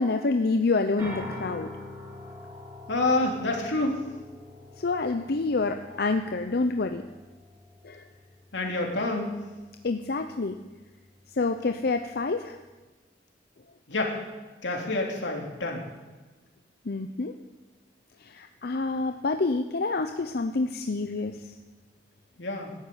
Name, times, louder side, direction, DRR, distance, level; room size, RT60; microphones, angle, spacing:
voice 1, 0.0-1.7 4.8-7.0 7.8-8.1 9.8-10.6 11.3-12.6 16.9-17.4 18.2-21.4, left 3 dB, 60° left, 7 dB, 0.7 m, -27 dB
sound 1, 1.0-12.7, left 1 dB, 20° right, 6.3 m, -45 dB
voice 2, 2.9-4.0 8.5-9.3 13.9-14.2 14.6-15.8 22.4-22.7, left 2 dB, 90° left, 1 dB, 3.1 m, -27 dB
13.0 x 11.5 x 8.5 m, 1.2 s
head